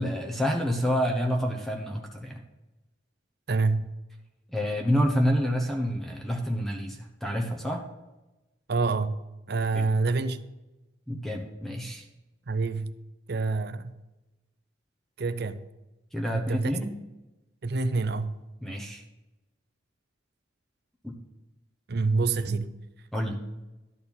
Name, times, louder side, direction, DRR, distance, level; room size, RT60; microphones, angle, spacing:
voice 1, 0.0-2.4 4.5-7.9 9.7-9.9 11.1-12.1 16.1-16.9 18.6-19.0 21.0-21.1 22.5-22.7 23.1-23.4, equal, ahead, 0.9 m, -28 dB
voice 2, 3.5-3.9 8.7-9.2 9.5-10.4 12.5-12.9 13.3-13.9 15.2-15.6 16.3-16.7 17.6-18.4 21.9-22.7, right 3 dB, 55° right, 0.6 m, -27 dB
12.0 x 4.3 x 7.0 m
head